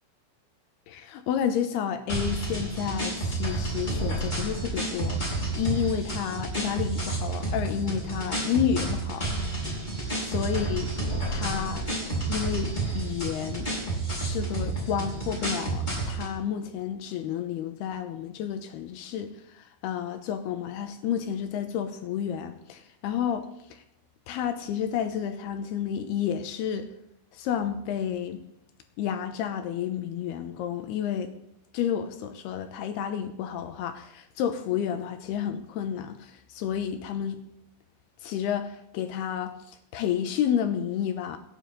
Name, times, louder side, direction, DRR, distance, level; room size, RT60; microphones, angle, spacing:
voice 1, 0.9-9.3 10.3-10.9 11.3-11.9 12.3-13.7 14.2-23.5 24.3-26.9 27.3-28.4 29.0-31.3 31.7-37.4 38.2-41.4, left 9 dB, 75° left, 8 dB, 2.5 m, -30 dB
sound 1, 2.1-16.3, right 2 dB, 10° left, 4.3 m, -30 dB
26.5 x 9.6 x 4.0 m, 0.78 s
omnidirectional pair, 5.3 m